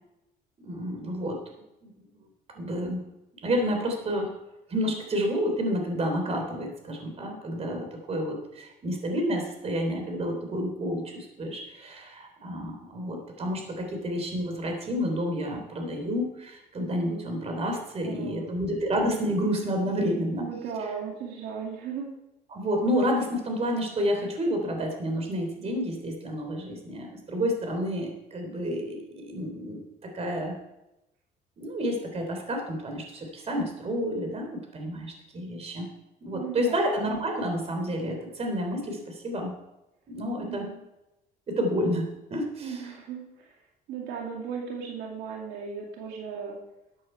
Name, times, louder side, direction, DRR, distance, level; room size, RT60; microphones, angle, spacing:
voice 1, 0.6-1.4 1.8-2.1 2.6-3.0 3.4-4.3 4.7-20.5 22.5-30.6 31.6-35.9 36.2-39.5 40.1-40.7 41.5-42.8, equal, 40° right, 3 dB, 3.5 m, -30 dB
voice 2, 18.0-18.6 20.4-22.1 36.3-36.8 40.4-40.7 42.6-43.5 43.9-46.6, right 6 dB, 90° right, 0 dB, 2.5 m, -36 dB
13.5 x 8.6 x 4.6 m, 0.93 s
cardioid pair, 110°, 17 cm